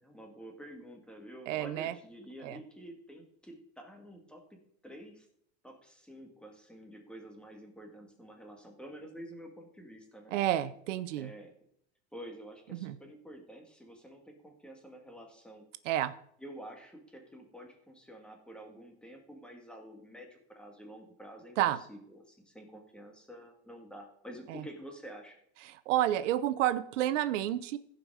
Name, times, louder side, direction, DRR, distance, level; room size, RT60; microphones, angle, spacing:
voice 1, 0.0-4.4 4.8-5.3 5.6-10.3 11.2-11.5 12.1-15.7 16.4-21.6 21.9-25.4, equal, 5° left, 2 dB, 2.1 m, -49 dB
voice 2, 1.5-1.9 2.4-2.6 10.3-11.3 12.8-13.0 15.8-16.1 21.6-21.8 24.5-24.6 25.6-27.8, right 13 dB, 85° right, 14 dB, 0.9 m, -30 dB
15.5 x 5.3 x 4.8 m, 0.68 s
supercardioid pair, 130°, 36 cm